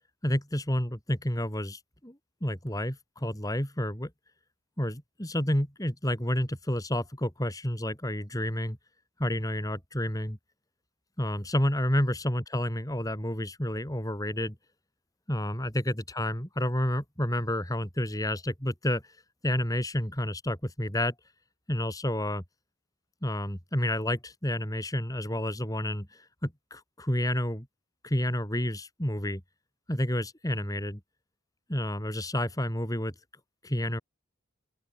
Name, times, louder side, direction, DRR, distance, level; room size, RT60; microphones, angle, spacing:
voice 1, 0.2-2.2 2.4-4.1 4.8-8.8 9.2-10.4 11.2-14.5 15.3-19.0 19.4-21.1 21.7-22.4 23.2-27.7 28.0-29.4 29.9-31.0 31.7-33.1 33.6-34.0, left 1 dB, 20° left, 5.0 m, -30 dB
open air
head